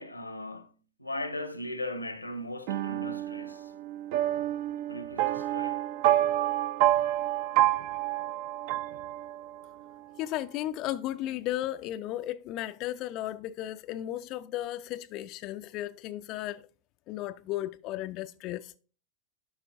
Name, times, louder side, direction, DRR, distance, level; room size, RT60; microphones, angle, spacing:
voice 1, 0.0-3.7 4.9-5.8, left 1 dB, 85° left, 0.8 m, -38 dB
sound 1, 2.7-9.6, right 14 dB, 50° right, 0.4 m, -28 dB
voice 2, 10.2-16.7 17.1-18.7, left 14 dB, 40° left, 0.3 m, -35 dB
12.0 x 5.8 x 2.5 m
figure-of-eight pair, 90°, 0 cm